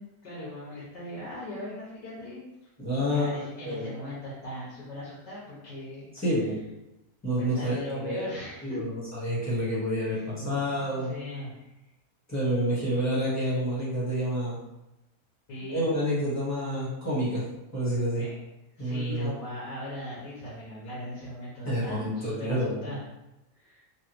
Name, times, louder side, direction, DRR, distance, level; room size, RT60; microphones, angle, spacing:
voice 1, 0.0-2.4 3.0-6.1 7.4-8.8 10.1-10.5 10.8-11.7 15.5-15.9 18.2-18.4 18.7-23.0 23.5-23.8, left 1 dB, 90° left, -7 dB, 1.7 m, -39 dB
voice 2, 2.8-3.9 6.1-6.6 7.2-8.4 8.6-11.1 12.3-14.6 15.7-17.4 17.7-18.2 18.8-19.3 21.6-22.9, equal, 10° left, -8 dB, 1.3 m, -28 dB
4.0 x 2.8 x 3.0 m, 0.94 s
omnidirectional pair, 1.8 m